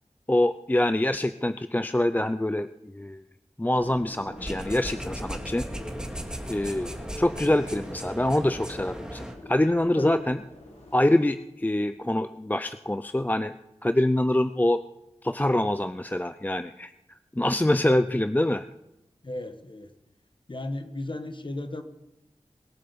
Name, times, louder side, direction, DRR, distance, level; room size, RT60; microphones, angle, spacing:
voice 1, 0.3-3.2 3.6-5.7 6.5-10.4 10.9-13.5 13.8-14.8 15.2-16.9 17.4-18.7, left 1 dB, 15° left, 11 dB, 0.5 m, -25 dB
sound 1, 3.7-11.0, left 1 dB, 75° left, 3.8 m, -46 dB
sound 2, 4.4-9.3, equal, 5° right, 2.2 m, -36 dB
voice 2, 19.2-19.9 20.5-21.8, left 2 dB, 45° left, 8 dB, 1.5 m, -34 dB
21.0 x 7.5 x 7.1 m, 0.92 s
wide cardioid pair, 60°, 12 cm